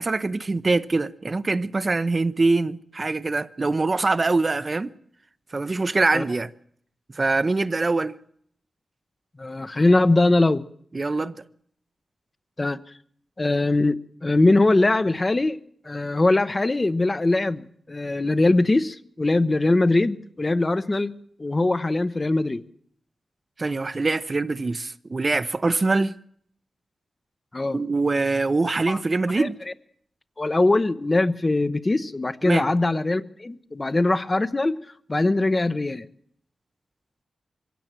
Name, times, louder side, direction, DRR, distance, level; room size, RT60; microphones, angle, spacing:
voice 1, 0.0-4.9 5.5-6.5 7.1-8.1 10.9-11.3 23.6-26.2 27.7-29.6 32.4-32.7, right 3 dB, 45° right, 0.7 m, -23 dB
voice 2, 9.4-10.6 12.6-12.8 13.4-15.6 15.8-22.6 27.5-27.8 28.9-29.0 29.4-29.5 30.4-34.8 35.1-36.1, left 2 dB, 35° left, 0.8 m, -21 dB
22.5 x 16.5 x 7.5 m
cardioid pair, 60°, 0 cm